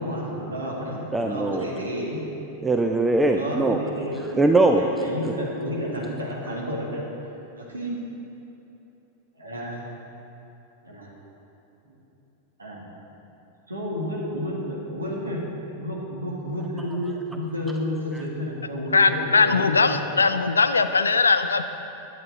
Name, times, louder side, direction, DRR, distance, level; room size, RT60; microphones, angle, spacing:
voice 1, 0.0-2.2 3.3-4.2 4.7-7.0 7.5-8.0 9.4-9.9 10.8-11.1 11.8-12.0 12.6-12.9 13.7-15.4 15.7-20.1, equal, 75° right, -3 dB, 1.8 m, -31 dB
voice 2, 1.1-1.6 2.6-3.8 4.4-4.8, right 2 dB, 10° right, 4 dB, 0.4 m, -20 dB
voice 3, 18.9-21.7, left 4 dB, 75° left, 10 dB, 0.4 m, -20 dB
10.5 x 8.5 x 3.9 m, 3.0 s
figure-of-eight pair, 90°, 0 cm